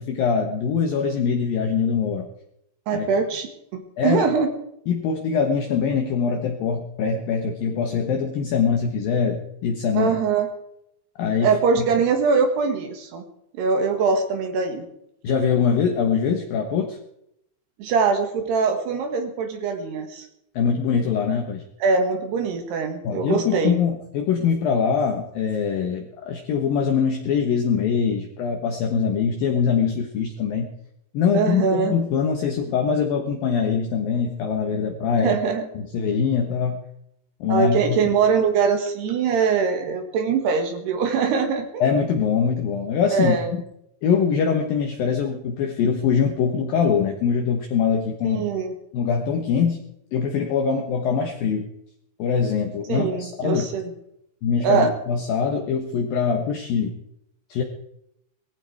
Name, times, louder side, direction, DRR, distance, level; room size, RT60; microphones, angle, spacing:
voice 1, 0.0-2.3 2.9-3.1 4.0-4.2 4.9-10.1 11.2-11.5 15.2-17.0 20.6-21.6 23.0-30.7 31.1-35.4 35.8-36.8 37.4-38.0 41.8-43.4 44.0-48.4 48.9-49.8 50.1-51.7 52.2-53.7 54.4-56.9 57.5-57.6, left 6 dB, 65° left, 4 dB, 2.6 m, -23 dB
voice 2, 2.9-3.5 3.7-4.5 10.0-10.5 11.4-13.3 13.5-14.9 17.8-20.3 21.8-23.8 31.3-32.0 35.2-35.7 37.5-41.9 43.1-43.5 48.2-48.7 52.9-53.9 54.6-54.9, right 5 dB, 70° right, 6 dB, 3.5 m, -22 dB
19.0 x 15.0 x 4.7 m, 0.77 s
omnidirectional pair, 5.2 m